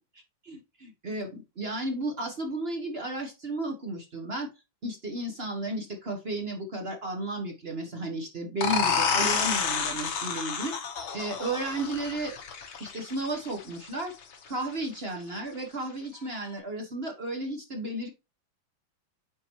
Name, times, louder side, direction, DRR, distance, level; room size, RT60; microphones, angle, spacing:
voice 1, 0.5-4.5 4.8-10.7 11.1-12.3 12.8-14.1 14.5-18.1, right 2 dB, 35° right, 3 dB, 1.2 m, -33 dB
sound 1, 8.6-14.0, left 6 dB, 85° left, 2.0 m, -29 dB
9.1 x 4.2 x 3.0 m, 0.27 s
omnidirectional pair, 2.1 m